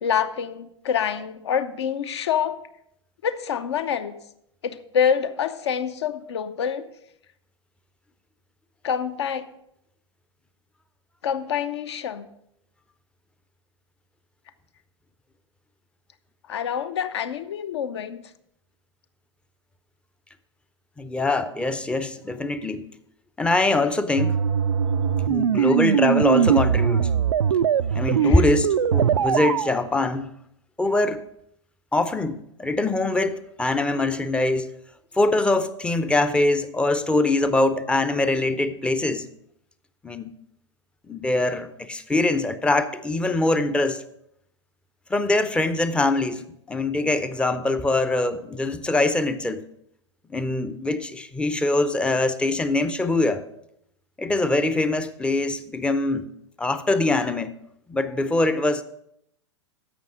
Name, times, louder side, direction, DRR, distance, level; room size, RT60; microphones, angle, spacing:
voice 1, 0.0-2.5 3.2-4.1 4.6-6.9 8.8-9.5 11.2-12.3 16.5-18.2 25.6-25.8 28.2-28.4, left 8 dB, 60° left, 0.8 m, -26 dB
voice 2, 21.0-22.9 23.4-24.4 25.3-27.1 27.9-30.3 30.8-31.2 31.9-34.7 35.1-39.3 40.0-40.3 41.1-44.0 45.1-49.6 50.3-53.4 54.2-56.3 56.6-57.5 57.9-58.8, left 2 dB, 5° left, 0.5 m, -23 dB
sound 1, 24.2-29.7, right 8 dB, 75° right, 0.4 m, -21 dB
11.0 x 7.6 x 4.9 m
figure-of-eight pair, 100°, 16 cm